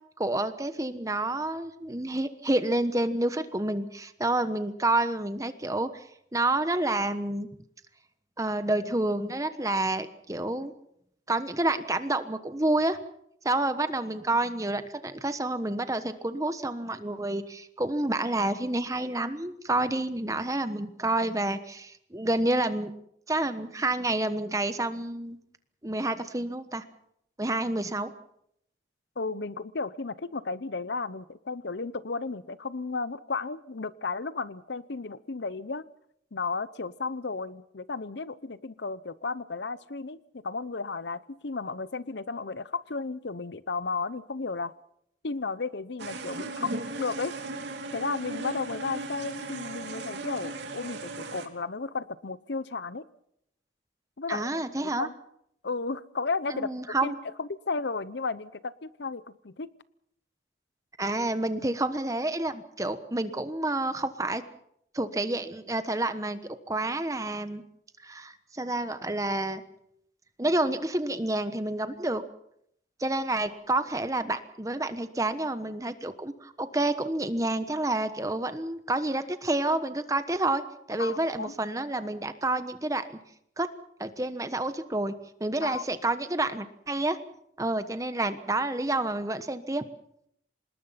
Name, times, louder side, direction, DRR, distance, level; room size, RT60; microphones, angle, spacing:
voice 1, 0.2-6.0 6.3-7.5 8.4-10.7 11.3-13.0 13.4-22.9 23.3-25.4 25.8-26.8 27.4-28.1 54.3-55.1 56.5-57.2 61.0-64.4 64.9-67.6 68.0-69.6 70.4-72.2 73.0-80.6 80.9-83.2 83.6-83.7 84.0-85.1 85.4-87.2 87.6-89.8, right 2 dB, 15° right, 10 dB, 1.2 m, -29 dB
voice 2, 29.2-35.8 36.3-44.7 45.2-46.7 47.0-47.3 47.9-53.0 54.2-54.5 54.8-55.1 55.6-56.7 57.0-57.1 57.4-59.7 81.0-81.5 85.6-85.8, left 4 dB, 65° left, 16 dB, 0.8 m, -33 dB
sound 1, 46.0-51.5, right 2 dB, 70° right, 3.0 m, -37 dB
26.0 x 20.0 x 5.8 m, 0.72 s
head